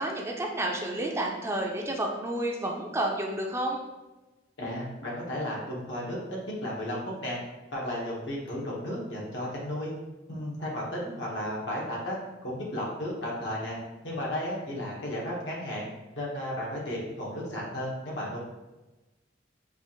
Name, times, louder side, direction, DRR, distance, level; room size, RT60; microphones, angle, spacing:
voice 1, 0.0-3.8, right 1 dB, 15° right, 0 dB, 0.4 m, -30 dB
voice 2, 4.6-7.4 7.7-9.9 10.3-13.8 14.0-15.9 16.1-18.4, left 1 dB, 85° left, -5 dB, 1.2 m, -34 dB
4.8 x 2.5 x 2.9 m, 1.1 s
head